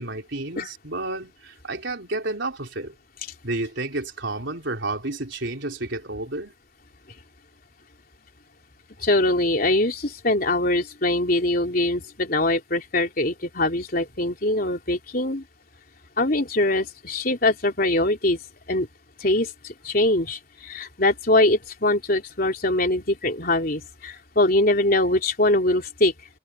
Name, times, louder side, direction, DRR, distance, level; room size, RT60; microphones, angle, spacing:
voice 1, 0.0-2.9 3.4-6.5, right 2 dB, 65° right, 4.0 m, -31 dB
voice 2, 9.0-15.4 16.2-18.4 18.7-18.9 19.2-26.1, left 2 dB, 45° left, 3.6 m, -22 dB
head